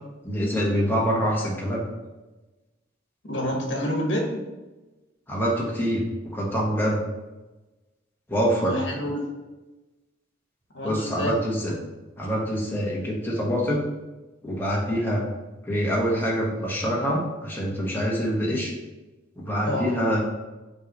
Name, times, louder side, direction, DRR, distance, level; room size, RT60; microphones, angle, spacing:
voice 1, 0.2-1.8 5.3-7.0 8.3-8.7 10.8-11.7 12.2-13.8 14.4-15.2 15.6-18.7 19.4-20.2, equal, 10° left, -4 dB, 1.3 m, -25 dB
voice 2, 3.2-4.4 8.6-9.2 10.7-11.3 19.7-19.9, equal, 65° left, 1 dB, 1.3 m, -28 dB
5.7 x 3.2 x 5.3 m, 1.1 s
head